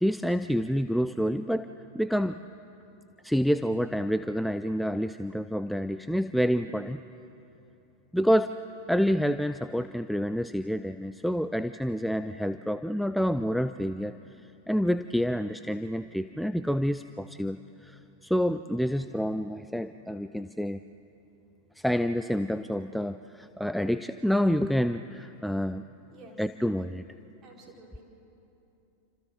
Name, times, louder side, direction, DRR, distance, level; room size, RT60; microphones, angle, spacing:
voice 1, 0.0-1.7 1.9-2.4 3.2-7.0 8.1-8.6 8.9-14.2 14.7-20.8 21.8-25.9 26.4-27.0, equal, ahead, 11 dB, 0.4 m, -28 dB
voice 2, 27.4-28.0, right 3 dB, 30° right, -2 dB, 4.5 m, -51 dB
29.0 x 26.0 x 3.9 m, 2.9 s
figure-of-eight pair, 90°, 0 cm